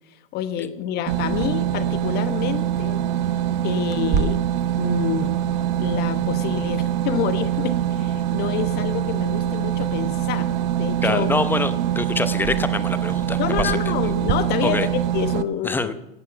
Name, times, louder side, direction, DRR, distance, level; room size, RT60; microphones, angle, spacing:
voice 1, 0.3-3.0 3.6-4.4 4.8-5.4 5.8-11.3 13.4-15.9, left 10 dB, 35° left, 10 dB, 1.2 m, -28 dB
sound 1, 1.1-15.4, right 11 dB, 50° right, 0.9 m, -24 dB
Clock, 3.9-14.3, right 6 dB, 25° right, 1.2 m, -34 dB
voice 2, 11.0-13.8 14.6-14.9 15.6-15.9, left 3 dB, 5° left, 11 dB, 0.8 m, -25 dB
18.0 x 8.7 x 5.7 m, 0.96 s
hypercardioid pair, 110°, 30 cm